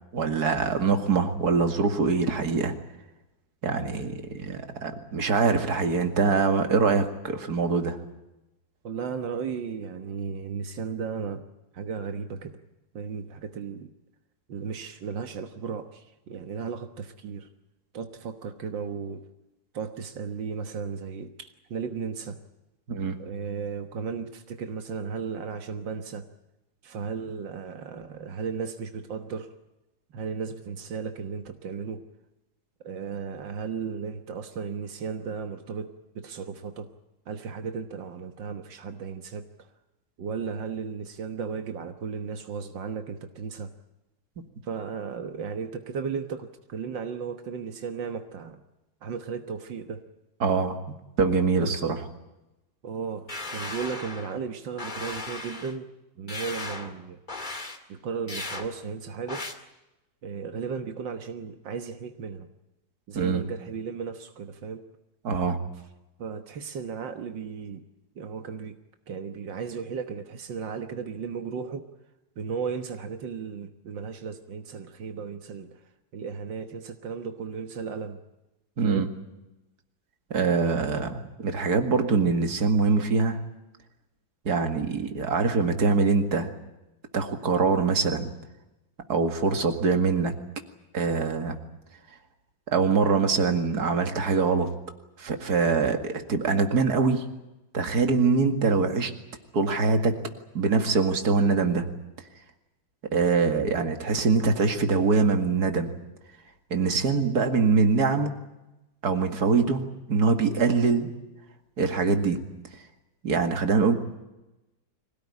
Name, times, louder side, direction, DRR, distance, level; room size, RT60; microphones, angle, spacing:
voice 1, 0.1-2.7 3.6-8.0 22.9-23.2 50.4-50.8 51.2-52.0 63.1-63.5 65.2-65.6 78.8-79.1 80.3-83.4 84.4-86.5 87.1-88.3 89.1-90.3 90.9-91.6 92.7-94.7 95.2-97.3 97.7-99.1 99.5-100.1 100.5-101.9 103.1-105.9 106.7-108.3 109.0-109.8 110.1-111.1 111.8-112.4 113.2-113.9, right 4 dB, 60° right, 6 dB, 2.6 m, -23 dB
voice 2, 8.8-11.4 11.7-12.6 12.9-13.9 14.5-17.5 17.9-19.3 19.7-22.4 23.2-26.3 26.8-29.5 30.1-32.0 32.8-36.9 37.3-39.5 40.2-43.7 44.6-48.6 49.0-50.0 51.6-51.9 52.8-55.9 56.2-57.2 57.9-59.5 60.2-62.5 63.1-64.8 66.2-67.8 68.2-68.8 69.1-71.9 72.4-75.8 76.1-78.2 78.8-79.1, right 6 dB, 85° right, 6 dB, 2.1 m, -35 dB
sound 1, 53.3-54.4 54.8-55.7 56.3-56.9 57.3-57.8 58.3-58.7 59.3-59.5, left 2 dB, 25° left, 2.2 m, -36 dB
25.5 x 17.5 x 9.9 m, 0.98 s
omnidirectional pair, 1.9 m